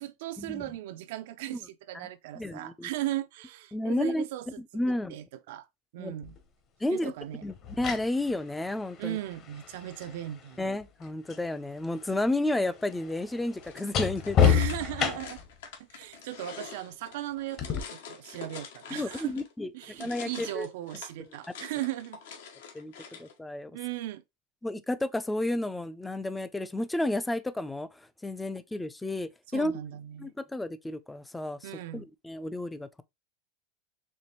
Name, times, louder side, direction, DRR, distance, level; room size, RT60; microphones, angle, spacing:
voice 1, 0.0-4.6 4.9-5.7 5.9-6.4 6.8-7.4 9.0-10.6 14.4-15.4 15.8-19.4 19.7-22.2 23.7-24.2 29.5-30.3 31.6-32.1, right 14 dB, 70° right, 0.4 m, -37 dB
voice 2, 2.4-2.9 3.7-4.2 4.7-5.2 6.0-6.1 6.8-7.1 7.4-9.2 10.6-14.4 18.9-20.7 22.7-22.9 23.2-23.7 24.6-27.9 28.2-29.7 30.2-33.0, left 1 dB, 5° left, 0.3 m, -31 dB
sound 1, 6.2-6.4 7.5-11.5 11.8-15.5 17.6-17.8, left 8 dB, 35° left, 0.7 m, -30 dB
sound 2, 13.6-19.5 19.8-23.3, left 6 dB, 85° left, 1.1 m, -46 dB
4.4 x 3.0 x 3.0 m
supercardioid pair, 155°, 0 cm